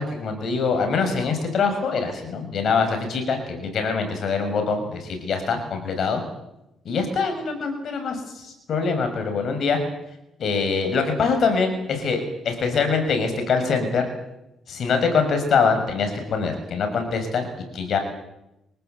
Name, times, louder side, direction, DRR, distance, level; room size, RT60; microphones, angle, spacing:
voice 1, 0.0-6.2 6.8-9.8 10.4-14.1 14.7-17.5 17.7-18.0, left 5 dB, 60° left, 6 dB, 6.5 m, -24 dB
25.5 x 18.5 x 8.3 m, 0.88 s
cardioid pair, 90°, 0 cm